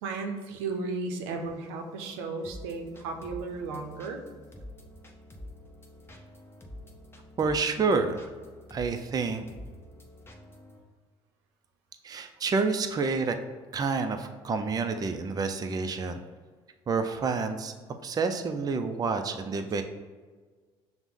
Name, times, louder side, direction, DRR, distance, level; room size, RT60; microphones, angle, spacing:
voice 1, 0.0-4.2, right 3 dB, 85° right, 4 dB, 0.5 m, -34 dB
sound 1, 2.4-10.8, left 1 dB, 20° left, 0.7 m, -47 dB
voice 2, 7.4-8.3 8.7-9.4 12.0-13.4 13.7-16.2 16.9-19.8, right 4 dB, 30° right, 7 dB, 0.4 m, -29 dB
5.8 x 2.1 x 3.5 m, 1.4 s
supercardioid pair, 70°, 13 cm